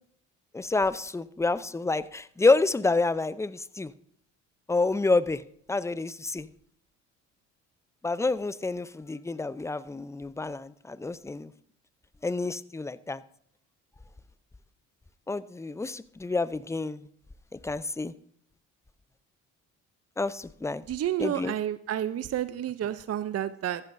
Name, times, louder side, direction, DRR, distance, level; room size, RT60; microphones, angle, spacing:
voice 1, 0.5-3.9 4.7-5.4 5.7-6.5 8.0-11.5 12.2-13.2 15.3-17.0 17.5-18.1 20.2-20.8 21.2-21.5, left 3 dB, 10° left, 17 dB, 0.5 m, -28 dB
voice 2, 20.9-23.8, right 11 dB, 40° right, 14 dB, 0.6 m, -30 dB
14.5 x 11.5 x 2.6 m, 0.67 s
hypercardioid pair, 60°, 37 cm